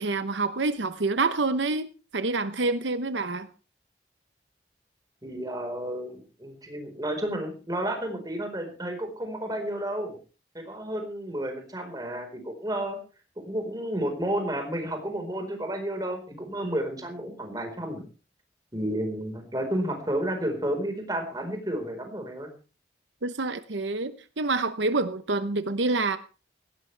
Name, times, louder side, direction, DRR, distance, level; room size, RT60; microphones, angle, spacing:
voice 1, 0.0-3.5 23.2-26.2, right 3 dB, 85° right, 1.0 m, -27 dB
voice 2, 5.2-10.1 10.5-13.0 13.4-18.0 18.7-22.5, right 1 dB, 20° right, 4.5 m, -31 dB
18.0 x 17.0 x 3.4 m
head